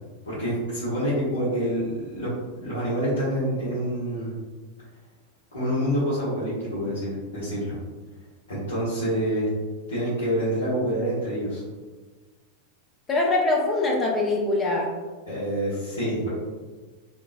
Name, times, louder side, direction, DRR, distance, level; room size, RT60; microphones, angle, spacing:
voice 1, 0.2-2.3 2.6-4.3 5.5-7.8 8.5-9.5 9.9-11.6 15.3-16.3, equal, 70° left, -13 dB, 1.3 m, -27 dB
voice 2, 13.1-15.0, left 2 dB, 20° left, -1 dB, 0.5 m, -23 dB
3.7 x 2.5 x 2.3 m, 1.4 s
figure-of-eight pair, 90°, 0 cm